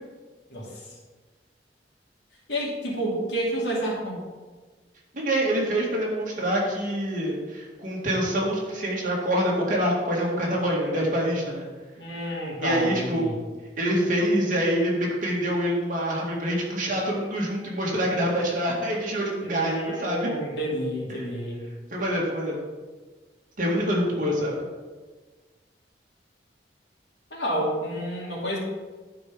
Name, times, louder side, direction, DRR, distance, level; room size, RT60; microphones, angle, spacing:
voice 1, 0.5-0.9 2.5-4.2 12.0-13.4 19.4-21.6 27.3-28.6, equal, 80° left, -4 dB, 2.7 m, -30 dB
voice 2, 5.1-11.6 12.6-13.2 13.8-20.3 21.1-21.2 21.9-22.6 23.6-24.5, equal, 45° right, -3 dB, 2.2 m, -26 dB
11.0 x 4.7 x 5.1 m, 1.4 s
head